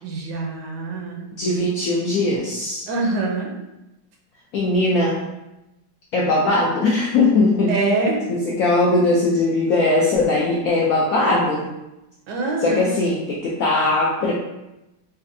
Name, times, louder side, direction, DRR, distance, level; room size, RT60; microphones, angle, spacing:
voice 1, 0.0-1.2 2.9-3.5 7.7-8.2 12.3-12.9, right 2 dB, 75° right, 0 dB, 1.3 m, -24 dB
voice 2, 1.4-2.9 4.5-5.2 6.1-7.7 8.3-11.7 12.6-14.4, left 2 dB, 75° left, -3 dB, 0.7 m, -20 dB
4.1 x 2.5 x 2.6 m, 0.98 s
omnidirectional pair, 2.0 m